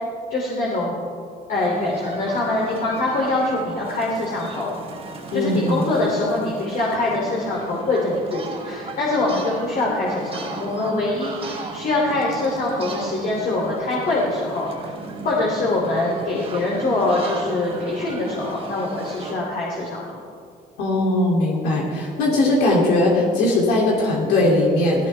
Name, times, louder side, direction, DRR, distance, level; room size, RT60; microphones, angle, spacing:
voice 1, 0.3-1.0 1.5-4.7 5.3-14.9 15.2-20.2, left 2 dB, 55° left, -4 dB, 3.0 m, -24 dB
sound 1, 1.5-19.3, right 3 dB, 35° right, 2.6 m, -36 dB
voice 2, 5.3-5.9 20.8-25.1, left 2 dB, 85° left, -3 dB, 2.8 m, -19 dB
17.0 x 16.5 x 3.4 m, 2.3 s
cardioid pair, 110°, 17 cm